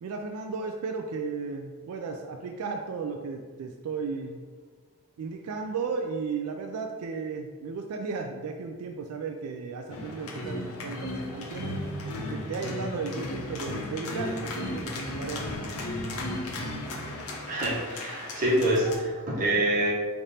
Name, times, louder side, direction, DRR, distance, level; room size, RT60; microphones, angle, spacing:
voice 1, 0.0-4.4 5.2-11.7 12.2-15.5, right 4 dB, 85° right, 3 dB, 0.3 m, -35 dB
sound 1, 9.9-19.0, left 1 dB, 85° left, 0.6 m, -35 dB
voice 2, 17.5-19.9, right 1 dB, 35° right, -5 dB, 1.0 m, -26 dB
3.4 x 2.5 x 4.0 m, 1.5 s
head